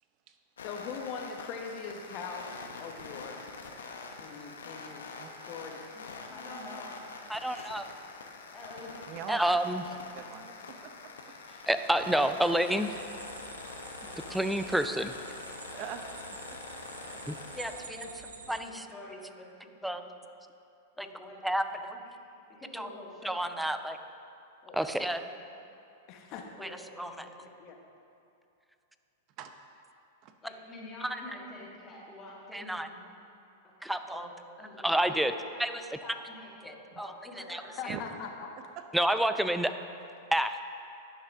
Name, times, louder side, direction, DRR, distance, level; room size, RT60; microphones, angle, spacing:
sound 1, 0.6-17.9, left 4 dB, 85° left, 0.7 m, -45 dB
voice 1, 0.6-3.5 4.2-5.9 6.3-6.5 26.1-26.4 27.6-27.8 37.8-38.5, left 6 dB, 45° left, 3 dB, 1.0 m, -41 dB
voice 2, 5.9-7.0 8.5-9.1 11.5-12.5 14.0-14.4 17.3-20.0 20.9-22.2 22.6-24.0 24.6-25.2 26.6-27.3 30.4-33.0 33.8-34.3 34.6-38.0 39.0-39.3 40.3-40.5, left 1 dB, 25° left, -5 dB, 1.7 m, -47 dB
voice 3, 7.3-7.9 9.3-9.8 11.7-12.9 14.3-15.1 17.3-17.7 18.5-18.6 19.8-20.0 21.0-21.1 21.4-21.6 22.7-22.9 23.2-24.0 24.7-25.2 26.6-26.7 27.0-27.1 31.0-31.2 32.5-32.9 33.8-34.3 34.8-35.3 35.6-35.7 37.0-37.1 37.5-37.6 38.9-39.7 40.3-40.5, right 1 dB, 5° right, 9 dB, 0.4 m, -28 dB
voice 4, 9.1-9.6 9.9-10.9 11.5-11.7 15.7-16.0 17.3-17.4 29.4-29.5 30.2-30.3 37.9-38.0 38.8-38.9, right 9 dB, 45° right, 7 dB, 0.6 m, -42 dB
sound 2, 12.8-18.6, right 5 dB, 90° right, 0.6 m, -48 dB
10.5 x 5.7 x 3.5 m, 2.6 s
hypercardioid pair, 110°, 0 cm